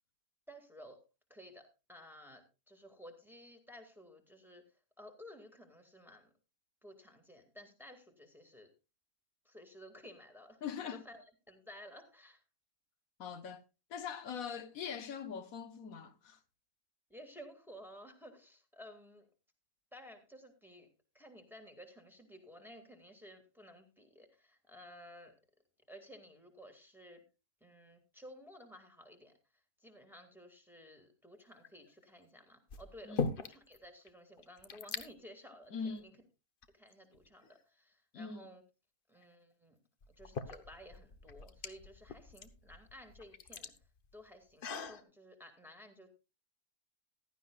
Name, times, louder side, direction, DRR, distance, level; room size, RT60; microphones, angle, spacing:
voice 1, 0.5-1.0 1.3-4.6 5.0-6.3 6.8-8.7 9.5-12.4 17.1-19.3 19.9-20.9 21.1-25.4 25.9-27.2 27.6-29.3 29.8-36.1 36.7-38.6 39.1-39.8 40.2-43.7 44.1-46.1, equal, ahead, 1.9 m, -55 dB
voice 2, 10.6-11.0 13.2-13.6 13.9-16.4 33.0-33.3 35.7-36.1 38.1-38.5, left 6 dB, 75° left, 1.3 m, -42 dB
sound 1, 31.5-31.9 32.7-33.8 34.1-34.2 34.4-35.1 35.9-36.0 36.6-37.5 39.2-39.3 40.0-45.0, left 5 dB, 45° left, 0.9 m, -42 dB
15.5 x 12.0 x 2.3 m
omnidirectional pair, 1.5 m